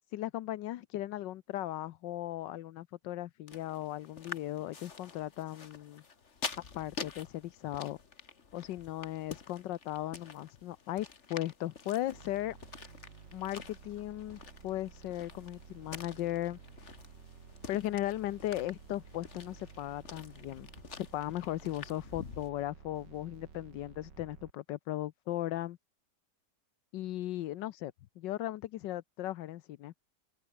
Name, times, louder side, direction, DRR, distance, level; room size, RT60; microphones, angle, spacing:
voice 1, 0.1-6.0 6.7-8.0 8.5-12.6 13.3-16.9 17.7-20.7 21.0-25.8 26.9-29.9, left 14 dB, 85° left, 1.4 m, -37 dB
sound 1, 3.5-22.5, left 5 dB, 40° left, 1.9 m, -48 dB
sound 2, 12.1-24.5, right 6 dB, 75° right, 2.8 m, -54 dB
open air
omnidirectional pair, 1.9 m